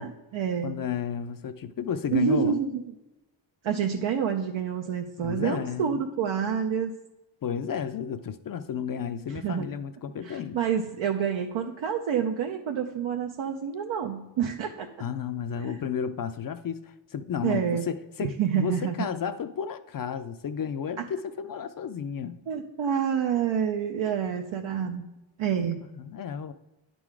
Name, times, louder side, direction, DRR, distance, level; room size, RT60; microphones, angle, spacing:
voice 1, 0.0-0.7 2.1-2.8 3.6-6.9 9.3-9.7 10.2-14.9 15.6-15.8 17.4-17.8 18.2-18.9 21.0-21.1 22.5-25.1 25.4-25.8, right 7 dB, 75° right, 0.7 m, -28 dB
voice 2, 0.6-2.6 5.2-6.1 7.4-10.6 15.0-22.4 25.6-25.7 25.9-26.5, left 7 dB, 50° left, 0.4 m, -32 dB
9.6 x 3.9 x 4.7 m
cardioid pair, 90°, 47 cm